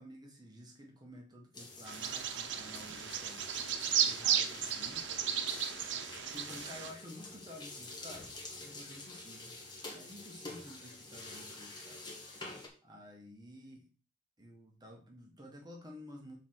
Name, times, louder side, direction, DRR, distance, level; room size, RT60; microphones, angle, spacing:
voice 1, 0.0-5.4 6.3-8.3 8.6-9.5 9.9-12.0 12.8-13.8 14.4-16.4, left 1 dB, 20° right, 1 dB, 1.4 m, -52 dB
sound 1, 1.5-12.7, left 2 dB, 25° left, 1.6 m, -48 dB
Bird vocalization bird call bird song, 1.9-6.9, right 8 dB, 80° right, 0.8 m, -34 dB
5.9 x 4.4 x 6.2 m, 0.37 s
head